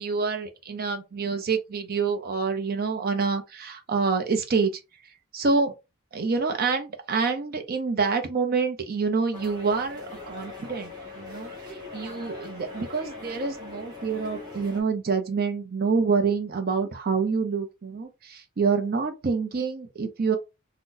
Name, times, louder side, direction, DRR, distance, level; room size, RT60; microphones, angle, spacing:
voice 1, 0.0-4.8 5.3-5.7 6.1-20.4, right 4 dB, 45° right, 0.6 m, -27 dB
sound 1, 9.3-14.8, left 3 dB, 20° right, 1.1 m, -41 dB
2.6 x 2.2 x 3.8 m
head